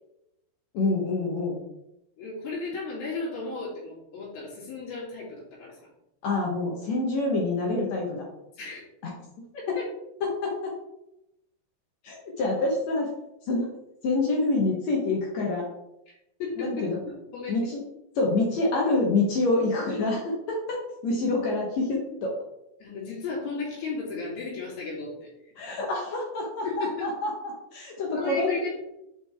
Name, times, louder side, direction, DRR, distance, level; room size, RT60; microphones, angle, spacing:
voice 1, 0.7-1.6 6.2-8.2 9.7-9.8 10.2-10.7 12.0-13.1 13.5-13.7 14.0-15.6 16.6-17.0 17.5-17.8 18.2-20.8 21.0-22.3 25.6-27.3 27.7-28.5, left 2 dB, 70° left, -1 dB, 1.7 m, -26 dB
voice 2, 2.2-5.8 8.5-8.8 9.8-9.9 16.1-16.2 16.4-17.6 22.8-25.5 26.6-27.1 28.1-28.8, left 4 dB, 85° left, -6 dB, 4.5 m, -34 dB
7.6 x 4.8 x 3.4 m, 0.86 s
omnidirectional pair, 4.3 m